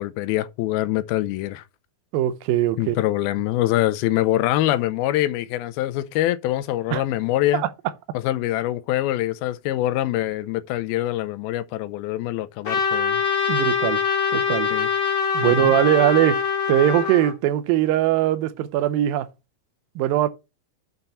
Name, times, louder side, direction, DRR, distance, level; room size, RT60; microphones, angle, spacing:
voice 1, 0.0-1.6 2.8-7.6 8.1-13.2 14.7-14.9 15.4-15.7, left 14 dB, 85° left, 2.5 m, -24 dB
voice 2, 2.1-3.0 6.9-7.0 7.5-7.7 13.5-14.0 14.3-14.7 15.3-19.3 20.0-20.3, right 13 dB, 80° right, 2.4 m, -21 dB
Trumpet, 12.6-17.3, left 6 dB, 40° left, 1.8 m, -23 dB
6.7 x 5.9 x 5.6 m
omnidirectional pair, 4.3 m